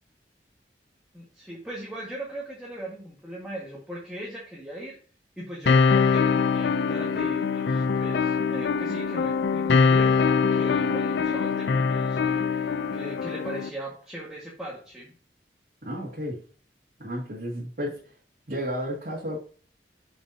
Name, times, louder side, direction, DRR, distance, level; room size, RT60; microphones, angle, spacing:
voice 1, 1.1-5.0 5.4-15.1, right 1 dB, 5° right, -5 dB, 1.7 m, -39 dB
sound 1, 5.7-13.7, left 5 dB, 75° left, 0.4 m, -23 dB
voice 2, 15.8-16.4 17.0-18.1 18.5-19.4, equal, 55° right, -6 dB, 2.2 m, -32 dB
6.9 x 6.2 x 2.8 m, 0.41 s
head